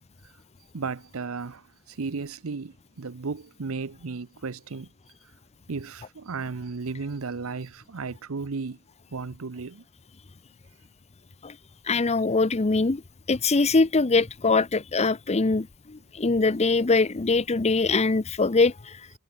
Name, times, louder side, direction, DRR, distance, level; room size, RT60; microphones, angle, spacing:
voice 1, 0.7-1.6 1.9-4.9 5.7-8.8 9.1-9.8, right 4 dB, 75° right, 0.7 m, -34 dB
voice 2, 11.9-13.0 13.3-19.0, left 3 dB, 30° left, 0.7 m, -23 dB
head